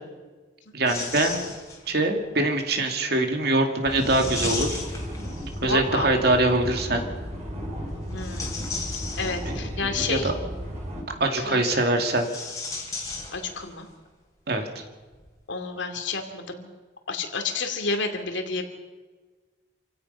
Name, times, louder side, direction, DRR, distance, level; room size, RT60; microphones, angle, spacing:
voice 1, 0.7-1.5 1.9-4.8 5.6-7.1 9.5-10.3 11.2-12.3 14.5-14.8, right 2 dB, 55° right, 4 dB, 2.5 m, -24 dB
sound 1, 0.9-2.0 3.9-5.8 8.0-9.8 12.0-13.8 14.1-14.2 15.1-15.3, left 4 dB, 15° left, 3.4 m, -35 dB
sound 2, 3.8-11.0, equal, 35° right, 5.7 m, -34 dB
voice 2, 5.6-6.1 8.1-8.6 8.9-10.3 11.4-11.8 13.3-13.9 15.5-16.7 17.1-18.6, left 4 dB, 70° left, 6 dB, 2.6 m, -30 dB
27.5 x 16.5 x 5.7 m, 1.3 s
head